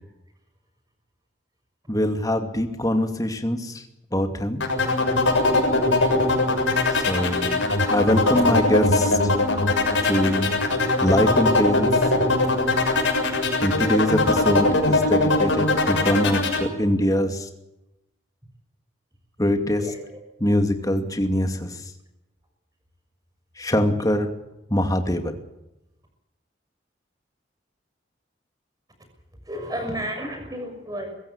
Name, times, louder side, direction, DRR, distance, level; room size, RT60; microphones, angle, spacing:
voice 1, 1.9-3.8 4.1-4.6 6.9-7.6 7.9-9.2 10.0-10.5 11.0-11.9 13.6-17.5 19.4-19.8 20.4-21.8 23.6-24.3 24.7-25.4, left 1 dB, 20° left, 6 dB, 2.4 m, -23 dB
sound 1, 4.6-16.6, left 2 dB, 90° left, 6.8 m, -21 dB
voice 2, 19.8-20.2 24.1-24.2 29.5-31.1, equal, 20° right, 5 dB, 6.3 m, -32 dB
23.5 x 15.5 x 8.4 m, 0.92 s
head